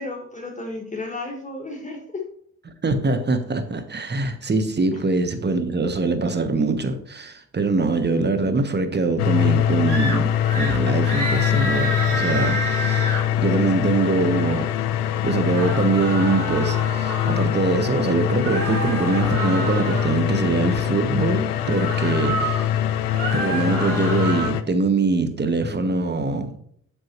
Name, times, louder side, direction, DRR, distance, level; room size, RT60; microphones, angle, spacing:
voice 1, 0.0-2.2 4.9-5.0, left 2 dB, 15° left, 0 dB, 1.5 m, -33 dB
voice 2, 2.8-13.0 13.4-14.7 15.2-22.9 23.3-26.5, right 3 dB, 25° right, 9 dB, 1.1 m, -23 dB
sound 1, 9.2-24.6, left 11 dB, 85° left, 0.5 m, -23 dB
sound 2, 9.9-10.2 10.4-10.8 11.0-13.2 15.3-17.5 18.4-20.2 21.6-22.6 23.0-24.5, right 2 dB, 80° right, 2.9 m, -29 dB
7.6 x 6.3 x 3.0 m, 0.63 s
hypercardioid pair, 45°, 45 cm